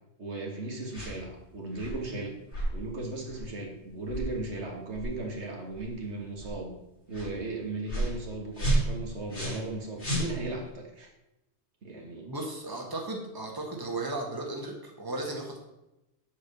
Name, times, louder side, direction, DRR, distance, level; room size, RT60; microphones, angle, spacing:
voice 1, 0.2-2.3 2.7-6.7 7.1-11.1 11.8-12.3, right 2 dB, 85° right, 1 dB, 2.1 m, -36 dB
sound 1, 0.9-1.2 1.7-2.0 2.5-2.7 3.3-3.5 4.1-4.3 4.9-5.1 5.7-5.9 6.4-6.5 7.1-7.3 7.9-8.2 8.5-9.7 10.0-10.7, right 1 dB, 90° left, 4.0 m, -31 dB
voice 2, 12.2-15.6, right 2 dB, 20° right, 0 dB, 1.7 m, -35 dB
8.4 x 5.2 x 6.9 m, 0.92 s
omnidirectional pair, 1.1 m